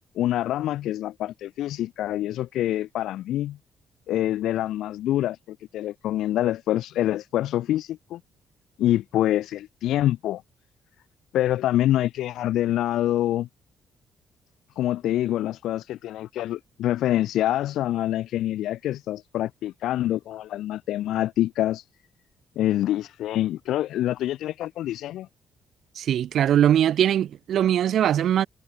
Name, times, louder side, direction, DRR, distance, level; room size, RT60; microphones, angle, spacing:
voice 1, 0.2-3.6 4.1-8.2 8.8-10.4 11.3-13.5 14.8-21.9 22.6-25.3, left 13 dB, 85° left, 1.9 m, -26 dB
voice 2, 26.0-28.5, right 10 dB, 70° right, 0.6 m, -21 dB
cardioid pair, 90°, 0 cm